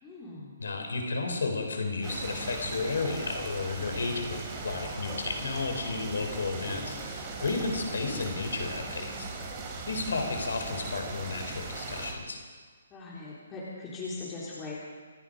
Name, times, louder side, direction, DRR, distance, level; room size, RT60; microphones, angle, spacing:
voice 1, 0.0-0.6 12.9-14.7, left 3 dB, 15° left, -7 dB, 4.0 m, -40 dB
voice 2, 0.6-9.3 9.9-12.4, left 3 dB, 75° left, 4 dB, 4.1 m, -32 dB
sound 1, 2.0-12.1, right 3 dB, 25° right, 3.6 m, -39 dB
27.0 x 10.0 x 5.2 m, 1.5 s
hypercardioid pair, 145°, 0 cm